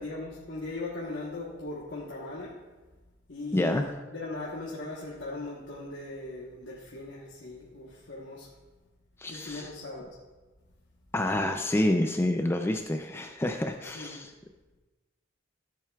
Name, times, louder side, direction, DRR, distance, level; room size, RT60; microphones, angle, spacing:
voice 1, 0.0-2.6 3.3-8.5 9.3-10.2 13.8-14.2, left 2 dB, 70° left, -5 dB, 1.2 m, -39 dB
voice 2, 3.5-3.9 9.2-9.7 11.1-14.3, left 1 dB, 15° left, 5 dB, 0.4 m, -28 dB
13.5 x 7.5 x 2.4 m, 1.2 s
head